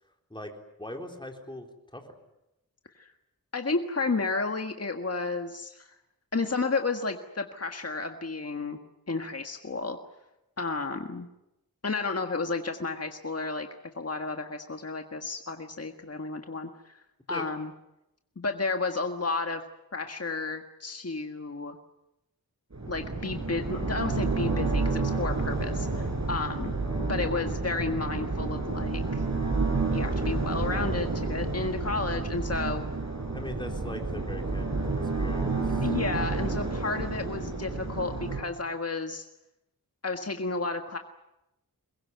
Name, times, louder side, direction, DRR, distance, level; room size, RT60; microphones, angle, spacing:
voice 1, 0.8-1.7 1.9-2.0 17.3-17.5 33.3-35.9, left 1 dB, 15° left, 2 dB, 3.9 m, -40 dB
voice 2, 3.5-5.9 6.3-8.8 9.1-10.0 10.6-11.3 11.8-13.7 14.0-17.0 17.3-17.7 18.4-19.6 19.9-21.8 22.9-26.8 27.1-29.2 29.9-32.8 35.8-39.2 40.0-41.0, left 3 dB, 45° left, 5 dB, 1.7 m, -32 dB
sound 1, 22.7-38.4, right 3 dB, 50° right, 5.7 m, -30 dB
23.5 x 21.5 x 9.4 m, 0.90 s
wide cardioid pair, 60°, 36 cm